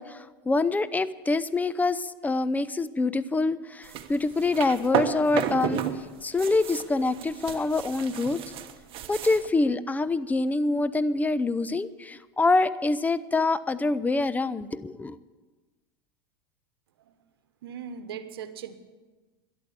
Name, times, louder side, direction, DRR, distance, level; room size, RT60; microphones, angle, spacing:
voice 1, 0.0-5.8 6.2-8.4 9.1-15.2, left 3 dB, 15° left, 16 dB, 0.6 m, -25 dB
sound 1, 3.8-5.9 6.2-9.5, right 10 dB, 45° right, 1.3 m, -32 dB
voice 2, 17.6-18.8, right 7 dB, 80° right, 11 dB, 1.2 m, -39 dB
13.0 x 11.0 x 8.3 m, 1.3 s
hypercardioid pair, 100°, 12 cm